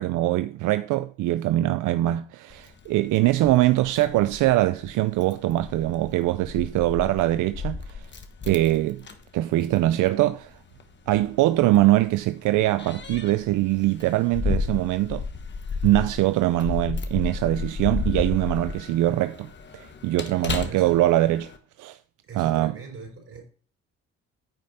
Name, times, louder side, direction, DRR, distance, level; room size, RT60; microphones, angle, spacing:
voice 1, 0.0-8.1 8.5-9.0 9.3-10.5 11.1-15.2 15.8-21.5 21.8-22.0 22.3-22.7, right 15 dB, 85° right, 0.5 m, -23 dB
Keys jangling, 2.5-21.6, left 4 dB, 35° left, 1.3 m, -34 dB
voice 2, 20.3-21.0 22.3-23.4, right 4 dB, 50° right, 4.7 m, -41 dB
9.5 x 5.2 x 4.2 m
cardioid pair, 90°, 30 cm